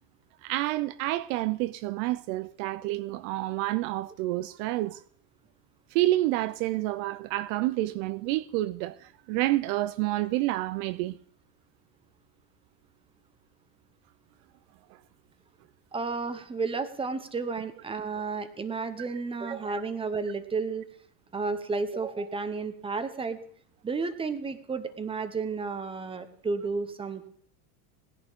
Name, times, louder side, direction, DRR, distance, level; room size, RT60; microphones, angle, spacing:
voice 1, 0.4-5.0 5.9-11.2, right 17 dB, 60° right, 0.5 m, -29 dB
voice 2, 15.9-20.9 21.3-23.4 23.8-27.3, right 4 dB, 10° right, 0.9 m, -32 dB
19.0 x 10.5 x 3.6 m
supercardioid pair, 135°, 47 cm